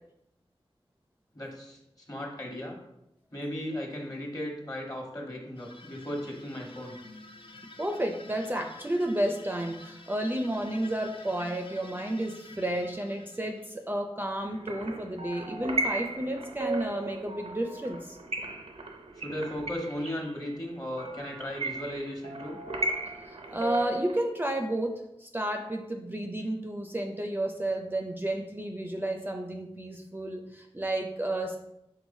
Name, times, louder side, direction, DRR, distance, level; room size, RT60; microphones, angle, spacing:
voice 1, 1.3-1.8 2.1-2.8 3.3-7.0 19.2-22.6, equal, 35° left, 0 dB, 1.2 m, -36 dB
sound 1, 5.6-14.0, left 2 dB, 60° left, 0.4 m, -50 dB
voice 2, 7.8-18.2 23.3-24.9 25.2-31.6, right 1 dB, 20° right, 3 dB, 0.4 m, -31 dB
sound 2, 14.4-24.2, right 2 dB, 80° right, 0.5 m, -36 dB
4.7 x 3.7 x 2.7 m, 0.83 s
wide cardioid pair, 50°, 10 cm